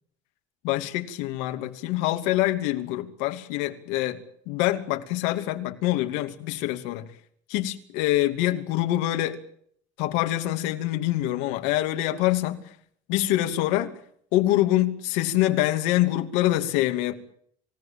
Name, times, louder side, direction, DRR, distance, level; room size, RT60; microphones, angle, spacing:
voice 1, 0.6-7.1 7.5-9.4 10.0-12.6 13.1-13.9 14.3-17.2, left 15 dB, 80° left, 2.7 m, -25 dB
27.5 x 17.5 x 8.9 m
cardioid pair, 180°, 19 cm